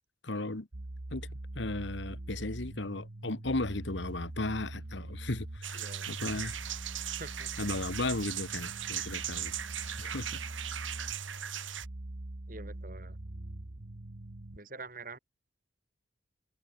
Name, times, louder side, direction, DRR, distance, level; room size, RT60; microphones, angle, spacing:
voice 1, 0.2-0.7 1.1-6.6 7.6-10.4, left 2 dB, 70° left, 1.5 m, -36 dB
sound 1, 0.7-14.6, right 1 dB, 65° right, 1.4 m, -43 dB
sound 2, 5.6-11.8, right 11 dB, 85° right, 2.5 m, -38 dB
voice 2, 5.7-6.4 7.1-7.5 12.5-13.2 14.5-15.2, right 3 dB, 45° right, 5.6 m, -46 dB
head